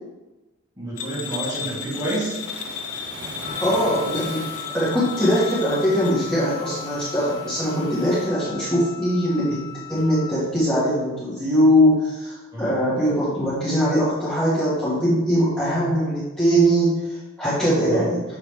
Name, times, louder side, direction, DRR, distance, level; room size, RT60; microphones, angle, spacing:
voice 1, 0.8-2.4 12.5-12.8 17.8-18.1, right 1 dB, 15° right, -7 dB, 2.1 m, -29 dB
sound 1, 1.0-6.1, left 7 dB, 80° left, 0.7 m, -34 dB
Waves surf, 2.4-8.3, right 1 dB, 55° right, 1.6 m, -39 dB
Wind instrument woodwind instrument, 3.4-10.4, left 11 dB, 45° left, 0.6 m, -38 dB
voice 2, 3.6-4.5 4.7-9.6 9.9-18.2, equal, 5° left, -10 dB, 1.8 m, -21 dB
7.2 x 5.6 x 3.4 m, 1.1 s
head